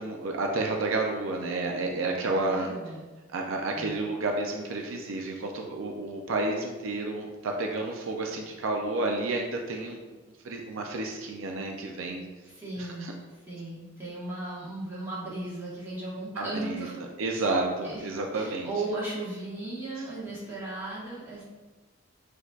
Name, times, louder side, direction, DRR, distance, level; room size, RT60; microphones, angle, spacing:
voice 1, 0.0-2.7 3.3-10.2 10.4-12.2 12.8-13.1 16.4-16.9 17.2-18.7, right 2 dB, 75° right, 2 dB, 0.5 m, -30 dB
voice 2, 2.2-3.1 3.7-4.0 12.4-13.1 13.5-17.0 17.3-17.5 17.8-21.4, right 2 dB, 10° right, -9 dB, 1.3 m, -36 dB
6.2 x 2.7 x 2.4 m, 1.2 s
head